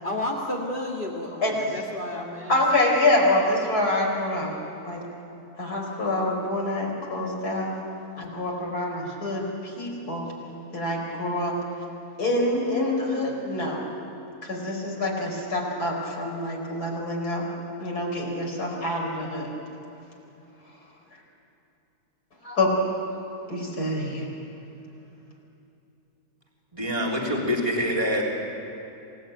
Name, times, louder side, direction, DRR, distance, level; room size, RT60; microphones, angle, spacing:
voice 1, 0.0-2.6, left 1 dB, 35° left, -2 dB, 2.1 m, -31 dB
voice 2, 2.5-5.0 5.6-7.7 8.2-10.3 10.7-11.5 12.2-13.8 14.4-17.5 17.8-19.5 22.4-22.7 23.5-24.3, left 1 dB, 75° left, -1 dB, 5.3 m, -26 dB
voice 3, 26.7-28.2, equal, 20° right, -3 dB, 3.8 m, -25 dB
27.5 x 18.5 x 9.1 m, 2.9 s
omnidirectional pair, 1.6 m